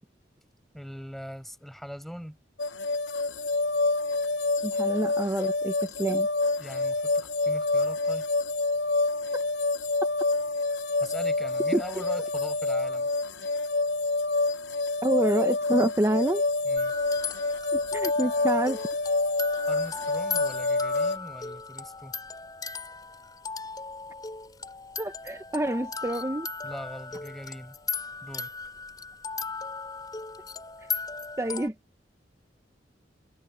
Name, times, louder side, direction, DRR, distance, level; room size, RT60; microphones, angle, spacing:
voice 1, 0.7-2.4 6.6-8.3 11.0-13.1 16.6-16.9 19.7-22.1 26.6-27.8 28.2-28.5, equal, ahead, 6.0 m, -41 dB
sound 1, 2.6-21.2, left 3 dB, 85° left, 1.0 m, -27 dB
voice 2, 4.6-5.7 6.0-6.3 9.3-9.4 11.7-11.8 15.0-16.4 17.7-18.8 25.0-26.5 31.4-31.7, right 1 dB, 15° right, 0.7 m, -27 dB
sound 2, 16.8-31.7, left 4 dB, 20° left, 7.5 m, -37 dB
head